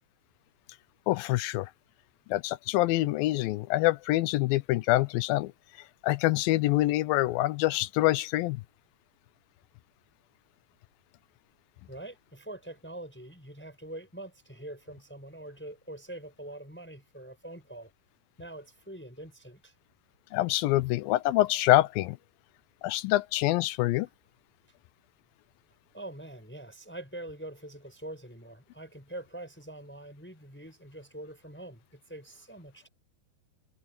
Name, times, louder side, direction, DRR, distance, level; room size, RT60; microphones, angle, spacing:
voice 1, 1.1-1.7 2.3-5.5 6.0-8.6 20.3-22.2 22.8-24.1, left 17 dB, 80° left, 2.3 m, -25 dB
voice 2, 11.9-17.9 18.4-19.7 25.9-32.9, right 1 dB, 5° left, 5.8 m, -44 dB
omnidirectional pair, 4.3 m